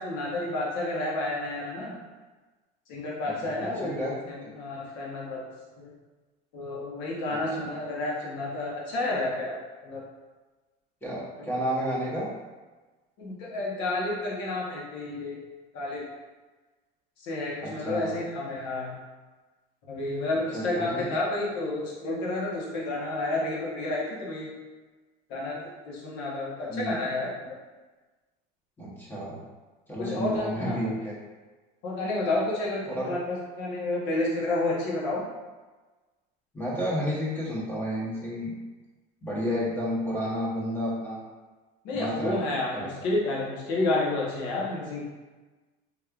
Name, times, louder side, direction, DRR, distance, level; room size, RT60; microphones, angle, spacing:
voice 1, 0.0-2.0 2.9-5.5 5.8-5.9 6.5-9.6 9.8-10.0 13.2-15.4 15.7-16.0 17.2-18.9 19.9-24.5 25.3-27.5 30.0-30.8 31.8-35.2 41.8-45.0, left 2 dB, 60° left, -4 dB, 1.1 m, -30 dB
voice 2, 3.4-4.5 7.3-7.4 11.0-12.3 17.6-18.2 20.5-21.2 26.7-26.9 28.8-29.4 29.9-31.1 32.9-33.1 36.5-38.6 39.2-41.2 41.9-42.4 42.7-42.9, equal, 10° left, -7 dB, 0.9 m, -31 dB
3.5 x 3.1 x 2.4 m, 1.3 s
cardioid pair, 150°, 20 cm